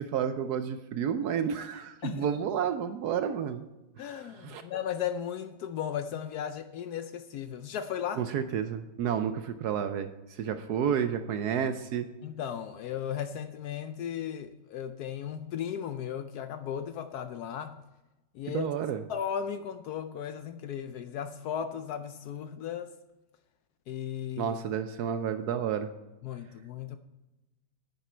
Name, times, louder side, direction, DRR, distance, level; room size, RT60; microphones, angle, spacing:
voice 1, 0.0-3.6 4.4-4.6 8.2-12.1 18.5-19.0 24.4-25.9, right 8 dB, 80° right, 9 dB, 0.9 m, -30 dB
voice 2, 4.0-8.3 10.5-10.6 12.2-17.8 18.3-18.7 19.1-22.9 23.9-24.6 26.2-27.0, left 9 dB, 80° left, 10 dB, 0.8 m, -36 dB
10.0 x 9.3 x 4.4 m, 1.0 s
omnidirectional pair, 2.3 m